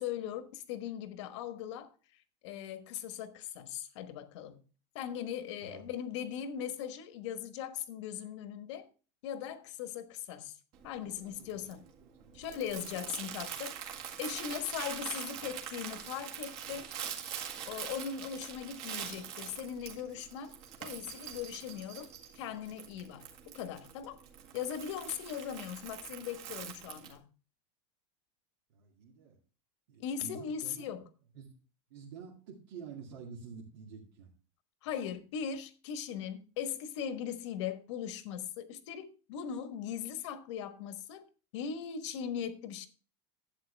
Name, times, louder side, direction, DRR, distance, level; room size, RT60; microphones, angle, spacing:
voice 1, 0.0-1.9 2.4-4.6 4.9-8.9 9.2-10.5 10.8-11.8 12.3-13.7 14.2-16.9 17.7-24.2 24.5-27.3 30.0-31.1 34.8-41.3 41.5-42.9, left 8 dB, 70° left, 1.3 m, -39 dB
Crumpling crinkling, 10.7-27.2, right 8 dB, 40° right, 1.9 m, -44 dB
voice 2, 11.0-11.7 12.0-13.0 28.7-29.4 29.9-30.9 31.3-31.5 31.9-34.3, right 6 dB, 65° right, 2.3 m, -49 dB
11.5 x 8.2 x 3.4 m
supercardioid pair, 175°, 16 cm